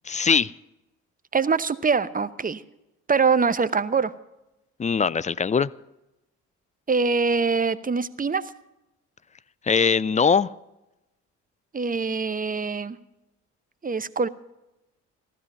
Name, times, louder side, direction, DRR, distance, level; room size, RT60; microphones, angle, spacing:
voice 1, 0.1-0.5 4.8-5.7 9.7-10.5, left 6 dB, 20° left, 19 dB, 0.4 m, -21 dB
voice 2, 1.3-2.6 3.1-4.1 6.9-8.4 11.7-13.0 13.8-14.3, right 5 dB, 25° right, 15 dB, 0.8 m, -23 dB
15.0 x 12.5 x 5.5 m, 0.93 s
hypercardioid pair, 50°, 37 cm